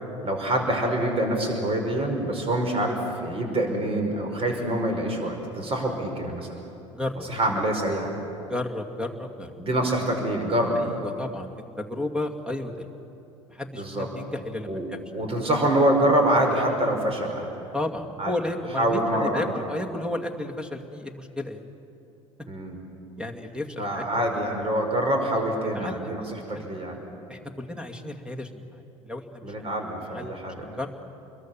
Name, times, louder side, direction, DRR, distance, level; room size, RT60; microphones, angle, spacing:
voice 1, 0.2-6.5 7.3-8.1 9.6-10.8 13.8-14.1 14.7-14.9 15.1-17.5 18.2-18.3 18.8-19.4 22.5-22.8 23.8-27.0 29.4-30.6, right 1 dB, 35° right, 3 dB, 5.3 m, -25 dB
voice 2, 6.9-7.3 8.5-9.5 10.8-12.8 13.5-15.0 17.7-21.6 23.2-24.4 25.7-26.1 26.5-26.6 27.3-29.5 30.1-30.9, left 1 dB, 5° right, 6 dB, 2.3 m, -33 dB
29.5 x 22.0 x 7.2 m, 2.7 s
figure-of-eight pair, 65°, 17 cm